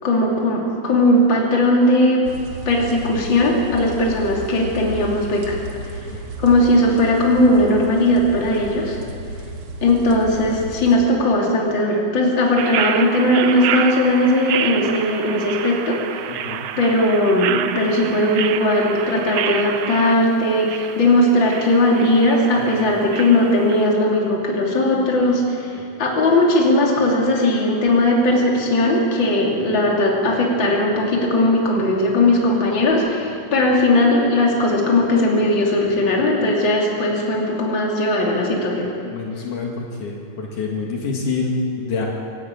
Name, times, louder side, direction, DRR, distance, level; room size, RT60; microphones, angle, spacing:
voice 1, 0.0-2.3 2.6-5.6 6.4-9.0 9.8-16.0 16.3-16.4 16.8-38.9, left 1 dB, 35° left, -2 dB, 3.5 m, -18 dB
sound 1, 2.2-11.0, right 2 dB, 50° right, 2.1 m, -33 dB
sound 2, 12.6-23.9, right 10 dB, 75° right, 2.1 m, -28 dB
voice 2, 16.3-16.7 22.5-22.7 39.0-42.1, left 4 dB, 70° left, -1 dB, 3.4 m, -27 dB
26.5 x 12.0 x 8.6 m, 2.4 s
omnidirectional pair, 3.7 m